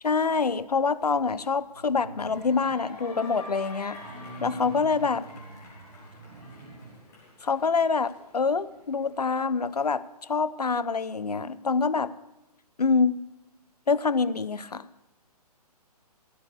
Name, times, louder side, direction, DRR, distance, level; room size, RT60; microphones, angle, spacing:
voice 1, 0.0-4.0 4.4-5.3 7.4-12.1 12.8-13.2 13.9-14.9, left 4 dB, 75° left, 16 dB, 0.7 m, -26 dB
sound 1, 1.7-3.0 3.9-7.1 7.6-7.7, right 3 dB, 50° right, 3.5 m, -46 dB
sound 2, 2.2-9.3, left 2 dB, 15° left, 3.0 m, -47 dB
14.0 x 9.3 x 6.6 m, 0.98 s
figure-of-eight pair, 135°, 20 cm